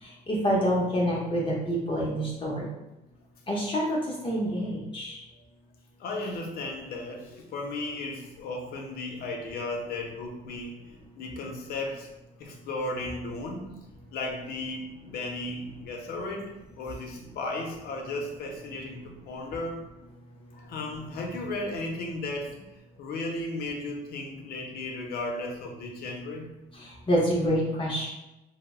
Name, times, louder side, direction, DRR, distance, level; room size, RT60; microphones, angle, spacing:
voice 1, 0.0-2.7 3.5-5.2 26.7-28.1, equal, 30° left, -4 dB, 0.7 m, -27 dB
voice 2, 6.0-12.1 12.4-13.7 14.1-19.8 20.5-26.5, left 2 dB, 65° left, 2 dB, 0.7 m, -35 dB
2.8 x 2.0 x 3.5 m, 0.94 s
cardioid pair, 110°, 17 cm